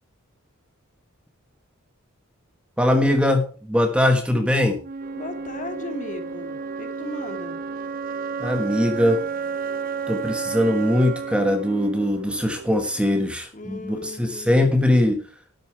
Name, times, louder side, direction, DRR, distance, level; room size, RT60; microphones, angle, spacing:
voice 1, 2.8-4.8 8.4-9.2 10.1-15.2, left 1 dB, 5° right, 6 dB, 1.2 m, -21 dB
Wind instrument woodwind instrument, 4.8-12.8, right 5 dB, 40° right, 0.6 m, -32 dB
sound 1, 5.0-13.1, right 3 dB, 65° right, 1.7 m, -43 dB
voice 2, 5.1-7.6 13.5-14.8, left 1 dB, 35° left, 5 dB, 2.5 m, -36 dB
12.5 x 9.4 x 4.8 m, 0.41 s
head